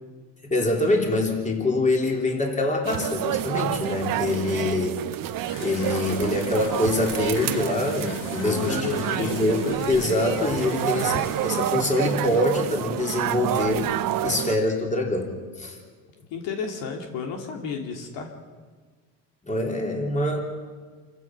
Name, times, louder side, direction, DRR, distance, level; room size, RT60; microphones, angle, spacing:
voice 1, 0.4-5.0 5.6-13.9 14.2-15.8 19.4-20.4, left 2 dB, 15° left, 1 dB, 3.6 m, -25 dB
sound 1, 2.8-14.6, right 12 dB, 45° right, 0.9 m, -28 dB
sound 2, 5.5-12.5, left 4 dB, 40° left, 2.1 m, -42 dB
voice 2, 8.4-9.4 10.7-11.2 16.3-18.3, left 5 dB, 65° left, 2 dB, 3.0 m, -32 dB
28.0 x 15.5 x 6.1 m, 1.5 s
supercardioid pair, 110°, 48 cm